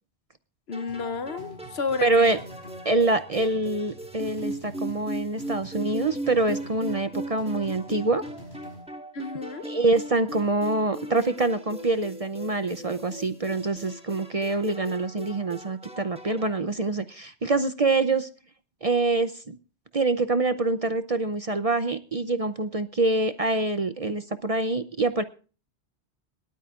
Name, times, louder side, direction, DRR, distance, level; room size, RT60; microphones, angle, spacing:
voice 1, 0.7-2.3 9.1-9.7, left 4 dB, 65° left, 1.2 m, -31 dB
sound 1, 0.7-16.6, right 1 dB, 5° right, 1.3 m, -39 dB
sound 2, 0.9-8.9, equal, 40° left, 6.0 m, -47 dB
voice 2, 2.0-2.4 2.8-8.2 9.6-18.3 18.8-19.6 19.9-25.2, right 3 dB, 40° right, 0.7 m, -25 dB
23.0 x 12.0 x 2.4 m
omnidirectional pair, 1.1 m